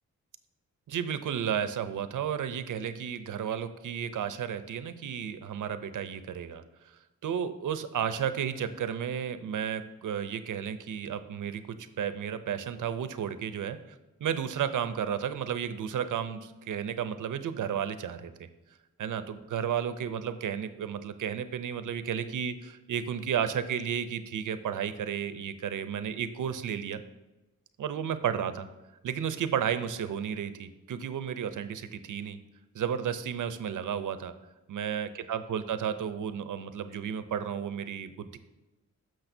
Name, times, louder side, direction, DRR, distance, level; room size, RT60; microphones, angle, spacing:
voice 1, 0.9-6.6 7.2-11.6 12.0-13.8 14.2-18.5 19.0-27.0 27.8-28.7 29.0-32.4 32.7-34.3 34.7-38.4, right 8 dB, 85° right, 12 dB, 0.6 m, -33 dB
10.0 x 6.4 x 2.7 m, 1.0 s
wide cardioid pair, 100°, 31 cm